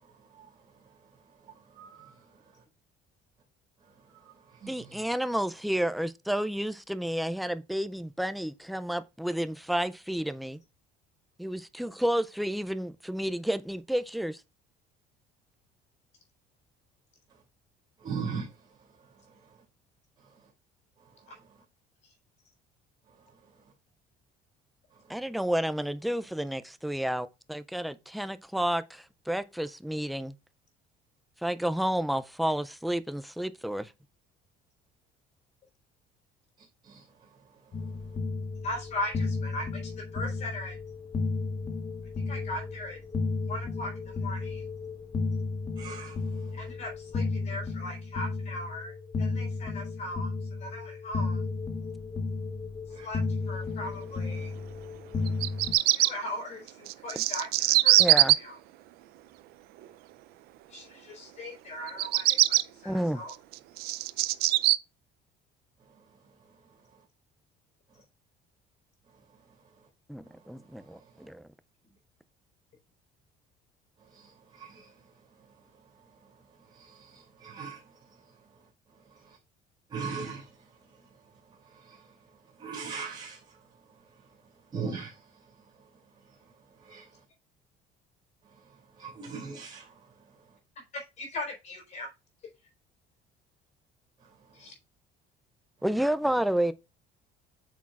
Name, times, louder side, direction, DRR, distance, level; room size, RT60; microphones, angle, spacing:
voice 1, 0.0-0.5 1.4-2.3 4.1-5.0 18.0-18.5 36.8-37.0 45.8-46.2 52.9-53.1 74.1-74.9 76.7-77.9 79.2-79.4 79.9-80.6 81.6-82.2 82.6-83.6 84.7-85.2 86.8-87.1 89.0-89.9, right 5 dB, 25° right, 2.7 m, -40 dB
voice 2, 4.7-10.6 11.4-14.4 25.1-30.3 31.4-33.9 58.0-58.4 62.8-63.2 70.1-71.5 95.8-96.7, right 1 dB, ahead, 0.3 m, -30 dB
sound 1, 37.7-55.7, left 4 dB, 25° left, 1.0 m, -33 dB
voice 3, 38.6-40.8 42.3-43.0 43.5-44.6 46.5-51.4 53.0-53.2 53.5-54.5 55.9-58.6 60.7-63.3 90.9-92.1 94.5-94.7, left 1 dB, 45° left, 3.8 m, -39 dB
Bird vocalization bird call bird song, 55.3-56.1 56.9-58.3 61.9-62.6 63.3-64.8, right 17 dB, 65° right, 0.5 m, -22 dB
8.4 x 6.2 x 2.4 m
cardioid pair, 160°, 17 cm